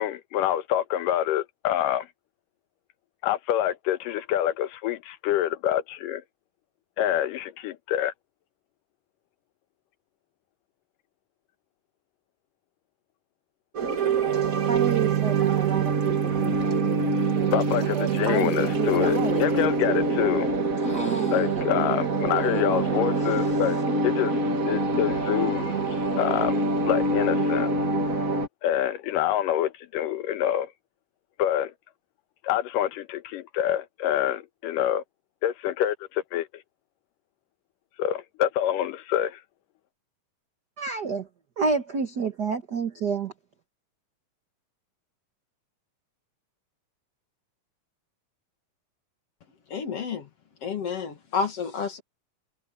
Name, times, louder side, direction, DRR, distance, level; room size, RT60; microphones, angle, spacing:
voice 1, 0.0-2.1 3.2-6.2 7.0-8.1 17.5-20.5 21.3-23.8 24.0-24.4 24.7-25.8 26.2-26.6 26.9-27.7 28.6-30.7 31.4-31.7 32.4-35.0 35.4-36.5 38.0-39.4, left 11 dB, 80° left, 2.6 m, -26 dB
sound 1, 13.7-28.5, right 3 dB, 35° right, 1.4 m, -25 dB
voice 2, 14.7-16.1 16.4-20.5 20.8-21.7 22.3-23.0 40.8-41.3 41.6-43.3, right 5 dB, 85° right, 0.9 m, -31 dB
voice 3, 49.7-50.3 50.6-52.0, left 6 dB, 50° left, 2.6 m, -30 dB
omnidirectional pair, 3.8 m